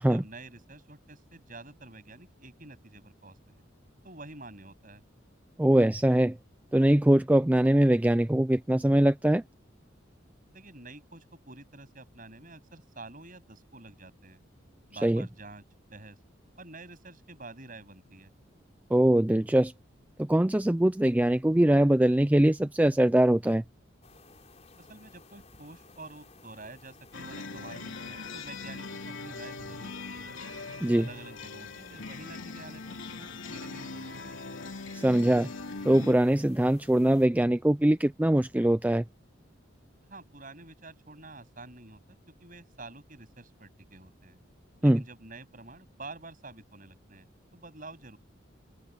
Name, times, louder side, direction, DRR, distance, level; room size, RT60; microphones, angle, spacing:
voice 1, 0.1-3.6 4.0-5.0 10.5-14.4 14.9-15.6 15.9-16.2 16.6-18.3 24.8-30.4 31.0-34.4 40.1-42.0 42.4-44.4 44.8-47.3 47.5-48.2, right 2 dB, 45° right, 8.0 m, -48 dB
voice 2, 5.6-6.4 6.7-9.4 15.0-15.3 18.9-19.7 20.2-23.6 30.8-31.0 34.9-35.5 35.9-39.0 44.8-45.0, right 1 dB, 10° right, 0.4 m, -22 dB
sound 1, 24.0-37.3, left 3 dB, 35° left, 5.0 m, -56 dB
sound 2, 27.1-36.1, left 3 dB, 85° left, 2.7 m, -41 dB
open air
head